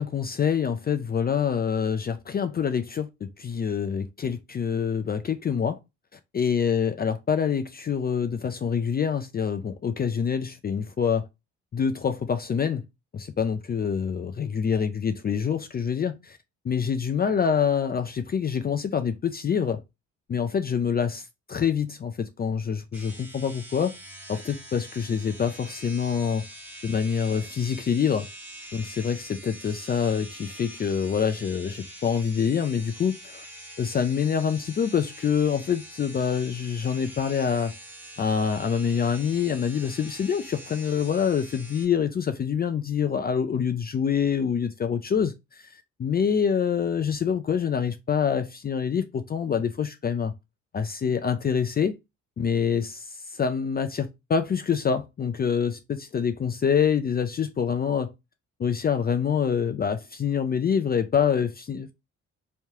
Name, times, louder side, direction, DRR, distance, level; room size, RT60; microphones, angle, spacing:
voice 1, 0.0-5.8 6.3-11.3 11.7-12.8 13.1-16.4 16.6-19.8 20.3-24.0 24.3-26.4 26.8-28.3 28.7-33.4 33.8-37.7 38.2-45.7 46.0-50.3 50.7-51.9 52.4-58.1 58.6-61.9, left 7 dB, 30° left, 0.4 m, -26 dB
sound 1, 22.9-41.9, right 1 dB, 5° right, 1.4 m, -44 dB
3.3 x 2.8 x 3.5 m
cardioid pair, 90°, 30 cm